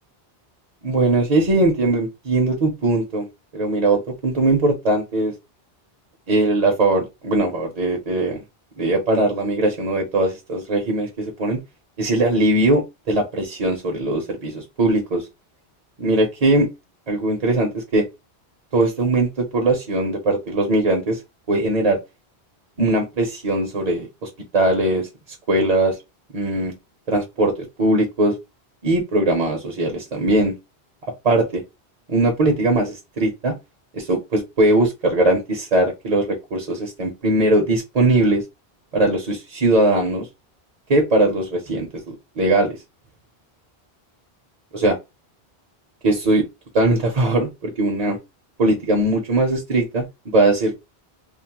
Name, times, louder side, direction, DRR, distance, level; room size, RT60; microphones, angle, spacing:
voice 1, 0.8-3.3 3.5-5.3 6.3-8.4 8.8-11.6 12.0-15.3 16.0-16.7 17.1-18.1 18.7-21.2 21.5-22.0 22.8-25.1 25.5-26.0 26.3-26.7 27.1-27.5 27.8-28.3 28.8-30.5 31.2-31.6 32.1-33.5 33.9-38.4 38.9-40.3 40.9-42.8 44.7-45.0 46.0-46.4 46.7-48.2 48.6-50.8, right 2 dB, 45° right, 0.6 m, -20 dB
2.9 x 2.0 x 2.8 m
omnidirectional pair, 1.1 m